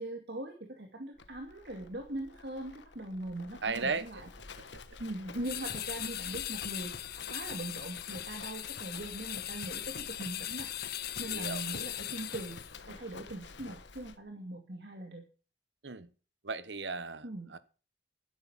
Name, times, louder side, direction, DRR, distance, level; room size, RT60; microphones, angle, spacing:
voice 1, 0.0-4.7 5.0-12.6 12.8-15.3 17.2-17.5, right 1 dB, 60° right, 3 dB, 2.4 m, -41 dB
Livestock farm animals working animals, 1.2-14.2, left 4 dB, 90° left, 1.3 m, -49 dB
voice 2, 3.6-4.2 4.6-4.7 11.3-11.6 15.8-16.1 16.4-17.6, right 4 dB, 80° right, 14 dB, 1.2 m, -36 dB
sound 1, 5.4-12.8, left 13 dB, 55° left, 0.8 m, -39 dB
13.0 x 10.5 x 5.8 m, 0.36 s
head